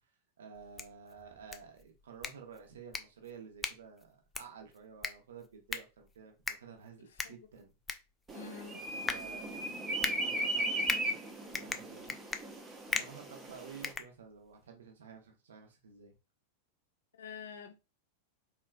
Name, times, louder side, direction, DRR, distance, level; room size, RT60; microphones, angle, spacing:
voice 1, 0.4-7.7 8.7-11.2 11.5-12.1 12.9-16.1, right 6 dB, 65° right, 0.9 m, -52 dB
sound 1, 0.5-14.7, left 4 dB, 10° left, 0.4 m, -41 dB
voice 2, 7.0-7.4 8.3-8.8 17.1-17.7, left 7 dB, 65° left, 0.6 m, -47 dB
sound 2, 8.3-13.9, right 1 dB, 20° right, 0.7 m, -37 dB
4.1 x 2.5 x 2.3 m
figure-of-eight pair, 90°, 0 cm